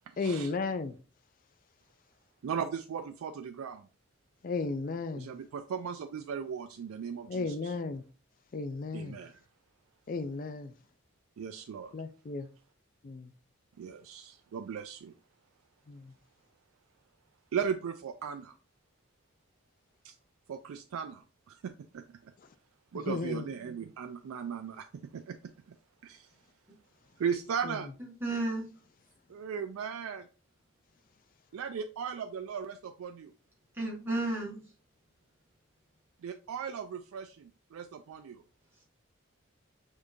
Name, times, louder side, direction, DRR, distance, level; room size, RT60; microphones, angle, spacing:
voice 1, 0.2-1.0 4.4-5.3 7.3-8.0 8.5-9.2 10.1-10.7 11.9-12.5 13.0-13.3 15.9-16.1 23.1-23.5 27.6-27.8, left 4 dB, 40° left, 0.3 m, -34 dB
voice 2, 2.4-3.9 5.1-7.7 8.9-9.4 11.4-11.9 13.8-15.1 17.5-18.5 20.0-20.1 20.5-22.0 22.9-24.9 25.1-25.4 26.0-26.3 27.2-27.9 29.3-30.3 31.5-33.3 36.2-38.4, right 7 dB, 85° right, 0.4 m, -37 dB
voice 3, 28.2-28.6 33.8-34.6, right 2 dB, 10° right, 1.6 m, -32 dB
5.1 x 3.5 x 2.6 m
head